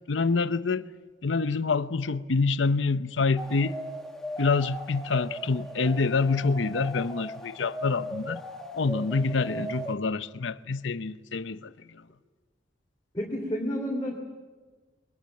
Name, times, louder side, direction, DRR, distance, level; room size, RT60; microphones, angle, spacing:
voice 1, 0.1-0.9 1.2-3.8 4.4-8.4 8.7-12.0, left 4 dB, 80° left, 0.8 m, -26 dB
sound 1, 3.4-9.9, equal, 5° left, 1.5 m, -38 dB
voice 2, 13.1-14.2, equal, 20° left, 3.0 m, -30 dB
23.0 x 19.0 x 9.3 m
head